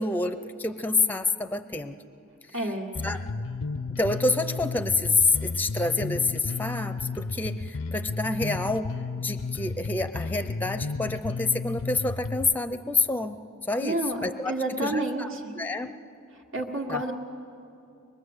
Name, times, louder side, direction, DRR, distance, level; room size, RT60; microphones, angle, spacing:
voice 1, 0.0-2.0 3.0-3.2 4.0-8.9 9.2-13.4 13.7-14.5 14.8-15.3 15.6-15.9 16.9-17.0, left 3 dB, 10° left, 10 dB, 0.6 m, -27 dB
voice 2, 2.5-3.0 13.8-14.2 14.5-15.5 16.5-17.1, right 1 dB, 75° right, -3 dB, 1.8 m, -29 dB
Bass guitar, 2.9-12.5, left 4 dB, 70° left, 0.5 m, -33 dB
24.0 x 22.0 x 8.0 m, 2.6 s
head